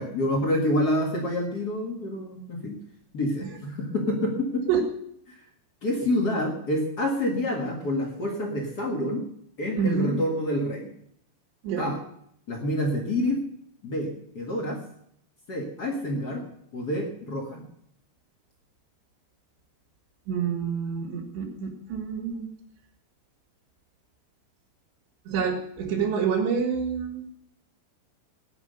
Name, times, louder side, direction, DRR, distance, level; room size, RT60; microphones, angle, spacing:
voice 1, 0.0-2.8 3.1-4.7 5.3-5.5 5.8-9.2 9.6-10.9 11.8-12.0 12.5-13.4 13.8-14.8 15.5-16.4 16.7-17.6, left 1 dB, 55° left, 1 dB, 1.1 m, -27 dB
voice 2, 9.8-10.2 11.6-11.9 20.3-22.5 25.3-27.2, right 6 dB, 80° right, -1 dB, 4.2 m, -27 dB
18.0 x 9.7 x 6.8 m, 0.72 s
omnidirectional pair, 4.9 m